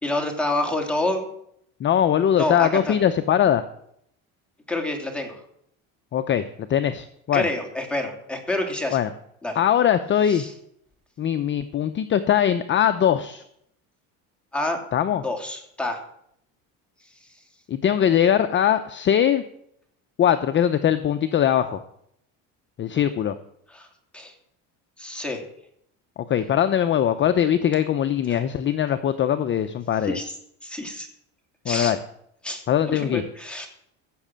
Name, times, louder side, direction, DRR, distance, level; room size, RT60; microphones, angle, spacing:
voice 1, 0.0-1.3 2.3-3.0 4.7-5.4 7.3-9.0 9.4-9.6 10.3-10.5 14.5-14.8 15.2-16.0 23.7-23.9 24.1-24.3 25.0-25.4 28.3-28.4 30.0-30.3 30.6-31.1 31.7-31.9 32.4-33.7, left 1 dB, 5° left, 1 dB, 2.7 m, -28 dB
voice 2, 1.8-3.6 6.1-7.5 8.9-9.1 9.6-10.4 11.2-13.4 14.9-15.2 17.7-19.4 20.2-21.8 22.8-23.4 26.3-30.2 31.7-32.0 32.7-33.2, left 9 dB, 30° left, 9 dB, 0.7 m, -21 dB
15.5 x 6.6 x 7.5 m, 0.72 s
cardioid pair, 130°, 36 cm